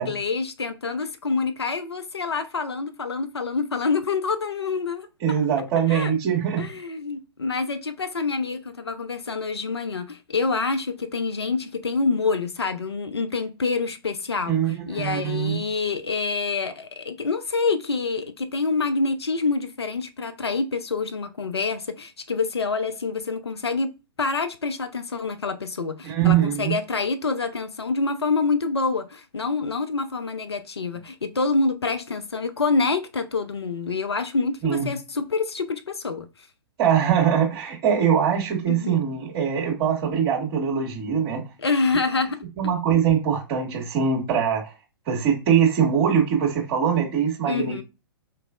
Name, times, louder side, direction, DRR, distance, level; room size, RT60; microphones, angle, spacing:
voice 1, 0.0-5.4 5.9-6.1 6.6-23.9 24.2-36.3 38.7-39.0 41.6-42.4 47.5-47.8, left 4 dB, 85° left, 0.5 m, -26 dB
voice 2, 5.2-6.7 14.5-15.6 26.0-26.7 34.6-34.9 36.8-41.4 42.6-44.7 45.0-47.8, right 8 dB, 40° right, 1.5 m, -22 dB
4.5 x 3.0 x 2.4 m
figure-of-eight pair, 110°, 13 cm